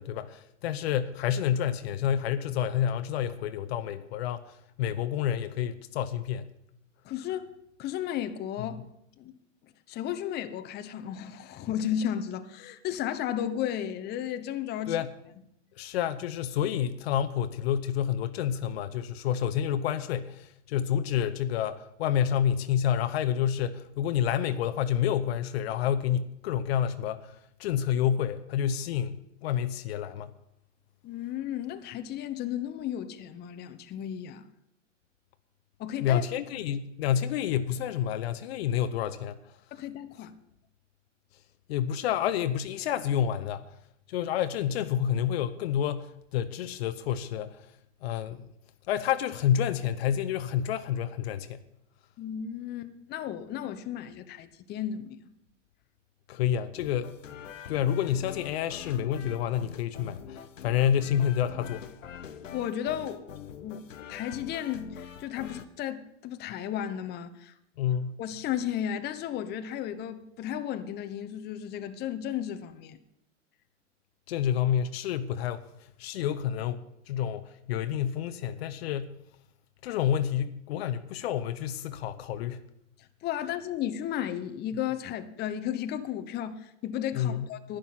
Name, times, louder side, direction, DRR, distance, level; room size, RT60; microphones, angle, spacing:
voice 1, 0.0-6.5 14.9-15.1 15.8-27.3 27.6-29.2 29.4-30.3 36.0-39.4 41.7-43.6 44.1-47.6 48.0-48.5 48.9-51.6 56.3-57.1 57.7-61.9 67.8-68.2 74.3-75.6 76.0-79.1 79.8-82.6 87.1-87.5, left 9 dB, 55° left, 0.8 m, -29 dB
voice 2, 7.0-7.5 7.8-8.8 9.2-9.3 9.9-15.0 31.0-34.4 35.8-36.2 39.7-40.3 52.2-55.3 62.5-67.5 67.8-67.9 68.2-73.0 83.2-87.8, left 10 dB, 25° left, 0.8 m, -34 dB
sound 1, 56.8-65.7, left 8 dB, 80° left, 1.0 m, -44 dB
11.0 x 10.5 x 5.8 m
hypercardioid pair, 110°, 38 cm